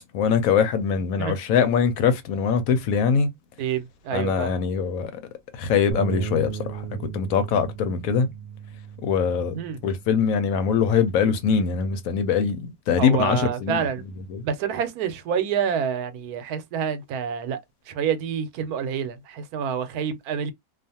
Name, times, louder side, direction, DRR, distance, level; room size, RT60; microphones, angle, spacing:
voice 1, 0.1-3.3 4.1-5.2 5.5-6.8 7.1-8.3 9.0-13.9 14.2-14.4, left 6 dB, 75° left, 1.0 m, -23 dB
voice 2, 3.6-4.6 9.5-9.8 13.0-14.0 14.4-17.6 17.9-20.5, right 7 dB, 85° right, 1.1 m, -27 dB
sound 1, 5.9-12.2, right 7 dB, 60° right, 0.9 m, -37 dB
2.4 x 2.4 x 2.7 m
omnidirectional pair, 1.5 m